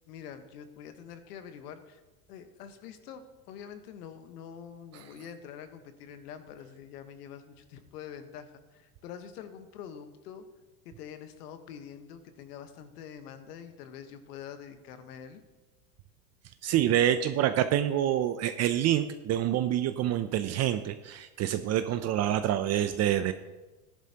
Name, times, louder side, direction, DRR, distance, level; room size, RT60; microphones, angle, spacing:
voice 1, 0.1-2.0 2.3-10.5 10.8-15.4, left 8 dB, 80° left, 9 dB, 1.3 m, -45 dB
voice 2, 16.6-23.3, right 11 dB, 35° right, 10 dB, 0.5 m, -27 dB
14.0 x 11.0 x 2.9 m, 1.1 s
supercardioid pair, 115°, 46 cm